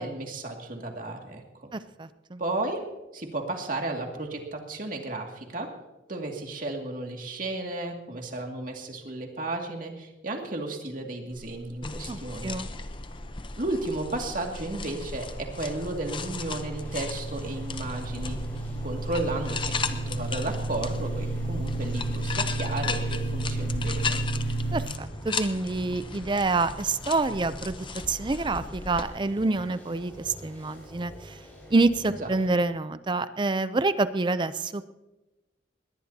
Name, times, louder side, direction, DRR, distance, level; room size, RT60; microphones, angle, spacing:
voice 1, 0.0-1.7 2.4-2.8 3.1-5.7 6.1-12.6 13.6-18.4 18.8-24.2 32.1-32.6, right 2 dB, 50° right, 2 dB, 2.2 m, -33 dB
voice 2, 1.7-2.4 12.1-12.7 24.7-27.8 28.1-31.4 31.7-34.9, right 3 dB, 25° right, 13 dB, 0.5 m, -27 dB
sound 1, 11.8-29.1, left 4 dB, 25° left, 0.7 m, -36 dB
sound 2, 14.0-24.8, right 2 dB, 65° left, 3.7 m, -33 dB
sound 3, 16.5-32.5, equal, 10° left, 6.1 m, -46 dB
21.0 x 18.5 x 2.8 m, 1.0 s
head